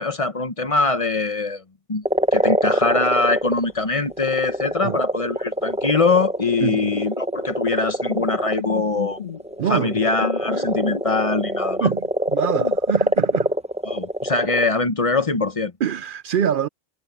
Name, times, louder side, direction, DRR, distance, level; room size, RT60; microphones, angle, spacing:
voice 1, 0.0-1.6 1.9-2.0 2.3-9.2 9.7-11.9 13.8-15.7, left 3 dB, 35° left, 1.0 m, -22 dB
sound 1, 2.1-3.7 4.0-14.7, right 1 dB, 5° right, 1.1 m, -24 dB
sound 2, 7.1-7.4 7.7-7.8 8.1-8.3 8.5-9.4 10.2-11.2 11.7-12.1 12.5-12.8, left 7 dB, 50° left, 1.8 m, -33 dB
voice 2, 9.6-10.0 11.8-13.5 15.8-16.7, right 8 dB, 65° right, 0.7 m, -24 dB
omnidirectional pair, 1.0 m